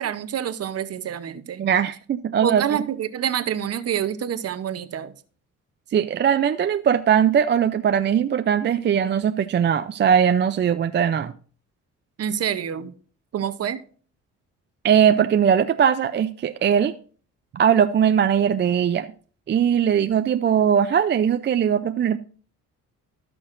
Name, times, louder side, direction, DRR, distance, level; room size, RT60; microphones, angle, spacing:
voice 1, 0.0-1.6 2.4-5.1 12.2-12.9 13.3-13.8, right 9 dB, 55° right, 0.8 m, -27 dB
voice 2, 1.6-2.6 5.9-11.3 14.8-16.9 17.6-19.1 19.5-22.2, right 8 dB, 35° right, 0.4 m, -20 dB
16.5 x 6.1 x 2.5 m
cardioid pair, 90°, 30 cm